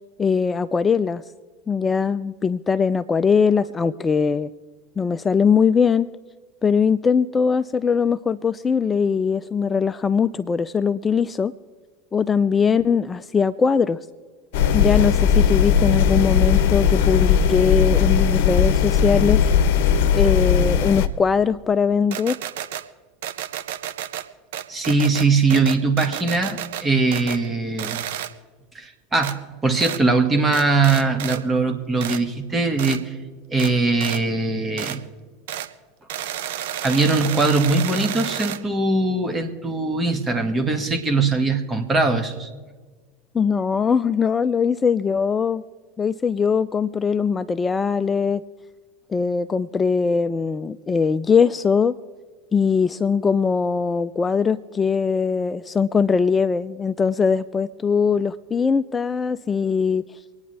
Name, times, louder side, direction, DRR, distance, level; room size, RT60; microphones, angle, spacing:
voice 1, 0.2-1.2 1.7-4.5 5.0-6.1 6.6-11.5 12.1-14.0 14.7-19.4 20.1-22.4 43.3-45.6 46.0-48.4 49.1-51.9 52.5-60.0, left 6 dB, 20° left, 14 dB, 0.4 m, -21 dB
sound 1, 14.5-21.1, left 7 dB, 65° left, 0.8 m, -18 dB
canon camera various clicks, 22.1-22.8 23.2-24.3 24.5-26.8 27.1-27.5 27.8-28.3 29.2-29.3 29.8-30.0 30.5-31.4 32.0-32.2 32.8-33.0 33.6-33.7 34.0-34.2 34.8-35.0 35.5-35.7 36.1-38.6, right 11 dB, 70° right, 0.8 m, -31 dB
voice 2, 24.7-28.0 28.7-33.2 33.5-35.0 36.8-42.5, right 3 dB, 20° right, 5 dB, 1.9 m, -21 dB
25.5 x 9.7 x 3.4 m, 1.4 s
hypercardioid pair, 80°, 0 cm